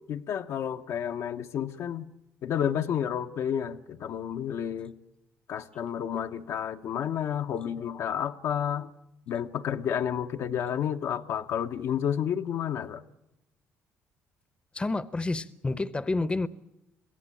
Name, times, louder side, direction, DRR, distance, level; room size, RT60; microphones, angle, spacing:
voice 1, 0.1-2.1 2.4-4.9 5.5-8.9 9.3-13.0, left 9 dB, 70° left, 0.9 m, -30 dB
voice 2, 14.7-16.5, left 2 dB, 20° left, 0.8 m, -29 dB
22.5 x 16.0 x 8.9 m
supercardioid pair, 75°, 5 cm